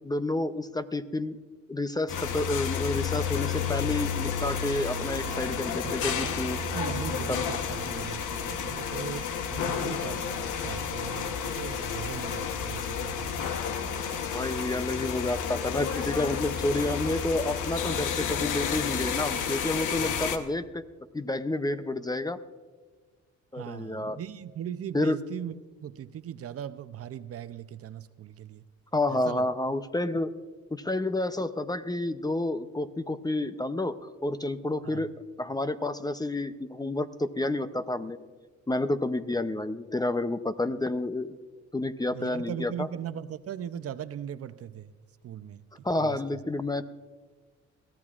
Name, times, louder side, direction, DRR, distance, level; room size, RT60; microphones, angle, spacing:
voice 1, 0.0-1.4 1.7-6.6 7.3-7.4 14.3-20.8 21.1-22.4 23.5-24.2 24.9-25.2 28.9-30.3 30.7-34.0 34.2-35.1 35.4-38.2 38.7-41.4 41.7-42.9 45.8-46.8, left 2 dB, 15° left, 11 dB, 0.6 m, -29 dB
sound 1, 2.1-20.4, left 7 dB, 80° left, 1.1 m, -31 dB
voice 2, 5.8-13.6 20.0-20.2 23.5-25.6 25.8-28.6 29.1-29.4 34.8-35.1 42.1-44.9 45.2-46.2, right 10 dB, 50° right, 13 dB, 0.6 m, -39 dB
22.0 x 15.0 x 2.4 m, 1.4 s
cardioid pair, 90°, 30 cm